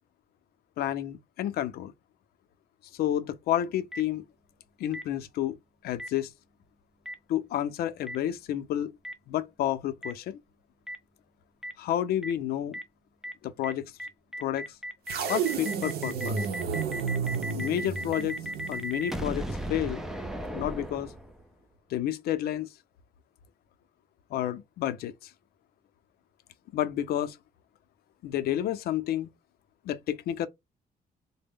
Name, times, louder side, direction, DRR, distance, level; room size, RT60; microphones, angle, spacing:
voice 1, 0.8-1.9 3.0-4.2 4.8-5.6 5.8-6.3 7.3-8.9 9.3-10.4 11.8-12.8 13.4-13.9 14.4-14.7 15.3-16.5 17.5-18.4 18.7-20.0 20.5-21.1 21.9-22.7 24.3-25.1 26.7-27.4 28.2-29.3 29.9-30.5, left 11 dB, 85° left, 0.5 m, -30 dB
Boom, 3.9-4.0 4.9-5.0 6.0-6.1 7.1-7.2 8.1-8.2 9.0-9.1 10.0-10.1 10.9-11.0 11.6-11.7 12.2-12.3 12.7-12.8 13.2-13.3 13.6-13.7 14.0-21.6, equal, 5° right, 0.4 m, -36 dB
sound 1, 15.1-19.4, right 6 dB, 85° right, 0.7 m, -32 dB
4.0 x 2.1 x 3.5 m
cardioid pair, 175°, 16 cm